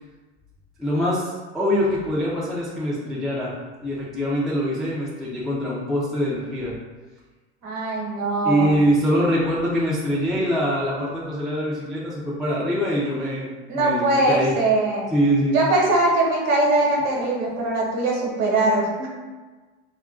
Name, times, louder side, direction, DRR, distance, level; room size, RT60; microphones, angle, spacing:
voice 1, 0.8-3.5 3.8-6.7 8.4-13.5 13.7-14.6 15.1-15.6, equal, ahead, -7 dB, 0.3 m, -23 dB
voice 2, 7.6-8.8 13.7-15.1 15.5-19.1, right 2 dB, 45° right, -1 dB, 1.0 m, -21 dB
2.4 x 2.2 x 3.5 m, 1.3 s
hypercardioid pair, 100°, 35 cm